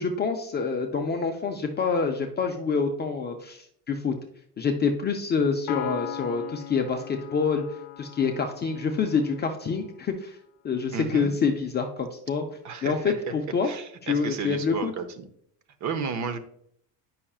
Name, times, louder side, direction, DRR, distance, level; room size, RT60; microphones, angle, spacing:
voice 1, 0.0-4.1 4.6-7.6 8.0-10.4 10.6-12.4 12.8-13.7 14.0-14.9, left 5 dB, 25° left, 3 dB, 0.4 m, -27 dB
Piano, 5.7-9.3, left 13 dB, 55° left, 0.8 m, -39 dB
voice 2, 10.9-11.3 12.6-13.1 13.6-15.3 15.8-16.4, right 5 dB, 40° right, 9 dB, 0.6 m, -33 dB
8.5 x 5.6 x 2.3 m, 0.69 s
cardioid pair, 135°, 46 cm